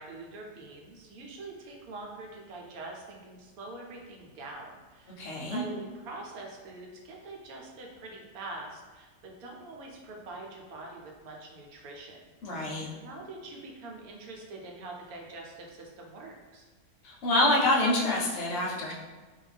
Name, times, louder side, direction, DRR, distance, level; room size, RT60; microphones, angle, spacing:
voice 1, 0.0-12.2 12.4-12.7 13.0-16.7, right 2 dB, 85° right, 0 dB, 1.1 m, -44 dB
voice 2, 5.2-5.6 12.4-12.9 17.0-18.9, left 1 dB, 60° left, -3 dB, 0.8 m, -26 dB
2.5 x 2.2 x 3.3 m, 1.3 s
omnidirectional pair, 1.5 m